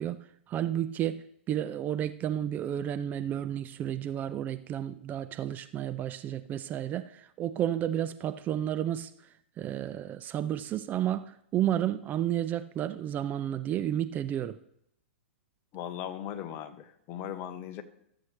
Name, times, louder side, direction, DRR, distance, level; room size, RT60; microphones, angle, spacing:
voice 1, 0.0-9.1 9.6-14.6, right 11 dB, 25° right, 11 dB, 0.4 m, -32 dB
voice 2, 15.7-17.8, left 10 dB, 35° left, 9 dB, 1.1 m, -38 dB
14.0 x 7.5 x 3.3 m, 0.73 s
figure-of-eight pair, 110°, 7 cm